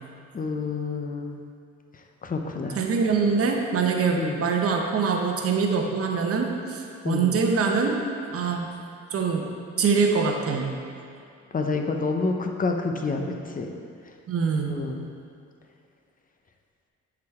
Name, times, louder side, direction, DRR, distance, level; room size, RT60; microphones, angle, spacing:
voice 1, 0.3-1.4 2.2-2.8 4.2-4.4 7.0-7.3 11.5-13.7 14.7-15.1, left 3 dB, 30° left, 4 dB, 0.7 m, -28 dB
voice 2, 2.8-7.9 8.3-8.7 9.1-9.5 9.8-10.7 14.3-14.8, right 5 dB, 50° right, 1 dB, 0.9 m, -24 dB
8.0 x 4.9 x 3.6 m, 2.4 s
cardioid pair, 90°, 30 cm